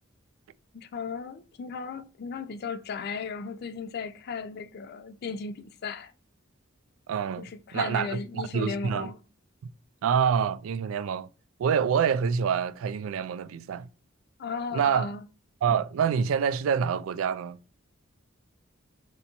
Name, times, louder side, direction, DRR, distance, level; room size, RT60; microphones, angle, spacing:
voice 1, 0.7-6.1 7.4-9.2 14.4-15.2, left 5 dB, 50° left, 0.4 m, -36 dB
voice 2, 7.1-7.5 7.7-9.1 10.0-11.3 11.6-13.9 14.7-15.1 15.6-17.6, right 7 dB, 80° right, 0.3 m, -26 dB
4.0 x 3.4 x 2.8 m
head